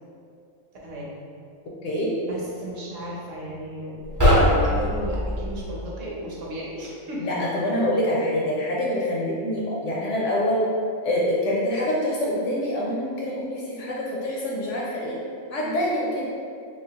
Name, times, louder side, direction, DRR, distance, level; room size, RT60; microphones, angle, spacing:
voice 1, 0.8-1.1 2.2-7.3, equal, 65° right, -5 dB, 0.9 m, -35 dB
voice 2, 1.8-2.1 7.2-10.7 11.0-15.2 15.5-16.3, left 1 dB, 70° left, -4 dB, 0.8 m, -25 dB
sound 1, 4.0-5.7, equal, 25° right, 0.4 m, -20 dB
3.4 x 2.8 x 2.8 m, 2.4 s
omnidirectional pair, 1.6 m